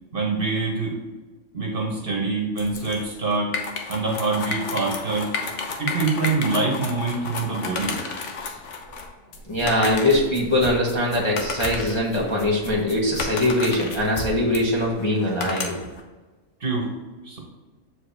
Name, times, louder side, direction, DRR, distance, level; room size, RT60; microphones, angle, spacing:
voice 1, 0.1-1.0 1.5-3.5 3.9-5.4 5.8-8.0 16.6-16.9 17.2-17.4, right 3 dB, 45° right, -2 dB, 1.4 m, -25 dB
sound 1, 2.6-16.0, left 4 dB, 65° left, 1.1 m, -32 dB
voice 2, 9.5-15.7, left 1 dB, 25° left, -5 dB, 1.0 m, -22 dB
7.0 x 4.8 x 3.4 m, 1.2 s
omnidirectional pair, 1.4 m